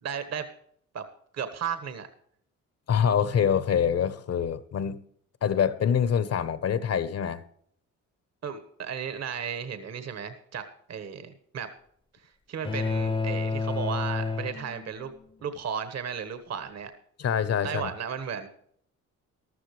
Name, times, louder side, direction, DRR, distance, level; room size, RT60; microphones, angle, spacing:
voice 1, 0.0-0.5 0.9-1.0 1.3-2.1 8.4-10.6 10.9-11.7 12.2-15.1 15.4-16.9 17.6-18.5, right 7 dB, 60° right, 1.5 m, -34 dB
voice 2, 2.9-5.0 5.4-7.4 17.2-17.9, left 8 dB, 55° left, 1.0 m, -25 dB
sound 1, 12.6-15.2, left 4 dB, 20° left, 0.7 m, -30 dB
14.0 x 13.0 x 3.2 m
cardioid pair, 90°, 30 cm